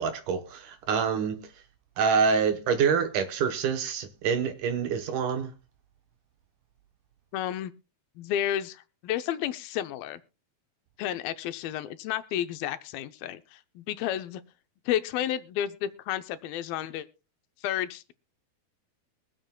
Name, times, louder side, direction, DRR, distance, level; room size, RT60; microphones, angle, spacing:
voice 1, 0.0-1.4 2.0-5.5, right 6 dB, 70° right, 2.2 m, -26 dB
voice 2, 7.3-7.7 8.2-10.2 11.0-14.4 14.9-17.1 17.6-18.1, left 11 dB, 80° left, 2.5 m, -31 dB
22.5 x 7.7 x 2.2 m
omnidirectional pair, 4.2 m